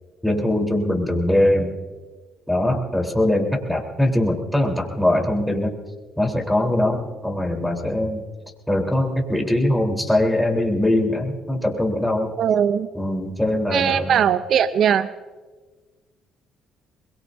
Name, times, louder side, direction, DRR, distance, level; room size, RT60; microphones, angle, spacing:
voice 1, 0.2-1.7 2.5-5.7 6.2-8.2 8.7-12.3 12.9-14.2, left 1 dB, 5° left, 0 dB, 3.8 m, -21 dB
voice 2, 12.4-12.9 13.7-15.1, right 8 dB, 65° right, 13 dB, 0.6 m, -19 dB
23.5 x 21.5 x 2.7 m, 1.3 s
supercardioid pair, 70°, 0 cm